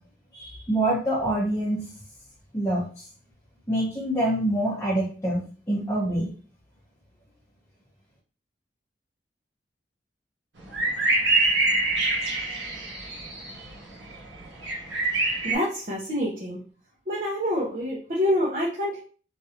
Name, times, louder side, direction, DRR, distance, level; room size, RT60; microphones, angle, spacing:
voice 1, 0.3-1.8 2.5-2.8 3.7-5.4 5.7-6.3, right 1 dB, 15° left, -7 dB, 0.7 m, -25 dB
sound 1, 10.7-13.7 14.0-15.5, right 2 dB, 90° right, 0.8 m, -25 dB
voice 2, 15.4-16.6 17.1-19.0, left 1 dB, 50° right, -5 dB, 0.7 m, -27 dB
3.2 x 2.6 x 2.8 m, 0.40 s
head